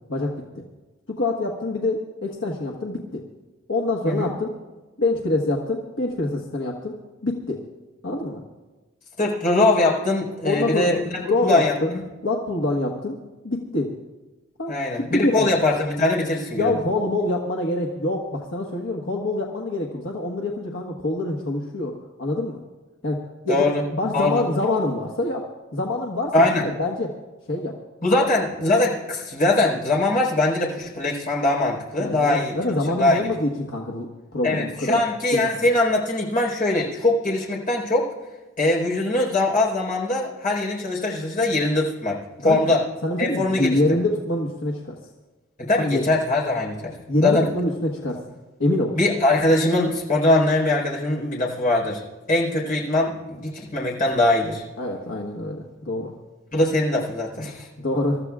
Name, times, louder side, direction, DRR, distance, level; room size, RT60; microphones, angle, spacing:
voice 1, 1.2-3.2 3.7-4.5 5.0-6.9 7.2-7.6 8.0-8.4 10.4-11.0 11.2-11.9 12.2-13.2 13.4-13.9 14.6-14.8 15.1-15.5 16.5-22.6 23.0-23.7 23.9-25.5 25.7-26.3 26.8-27.1 27.5-27.7 32.0-35.0 35.3-35.5 42.4-42.7 43.0-44.9 45.8-46.1 47.1-48.2 48.6-49.0 54.8-56.1 57.8-58.2, left 2 dB, 75° left, -1 dB, 1.4 m, -25 dB
voice 2, 9.2-12.0 14.7-16.8 23.5-23.8 24.1-24.4 26.3-26.7 28.0-32.6 32.9-33.2 34.4-38.1 38.6-42.8 43.2-43.8 45.6-46.9 47.2-47.5 49.0-52.0 52.3-54.6 56.5-57.7, left 2 dB, 45° left, -2 dB, 4.2 m, -22 dB
27.0 x 13.5 x 2.4 m, 1.2 s
head